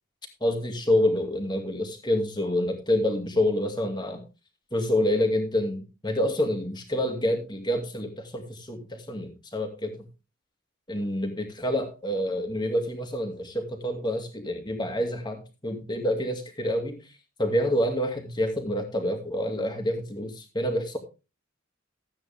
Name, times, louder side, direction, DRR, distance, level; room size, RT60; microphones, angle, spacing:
voice 1, 0.4-4.2 4.7-10.1 10.9-17.0 17.4-21.0, left 1 dB, 20° left, 4 dB, 2.3 m, -27 dB
14.0 x 8.8 x 3.5 m, 0.30 s
head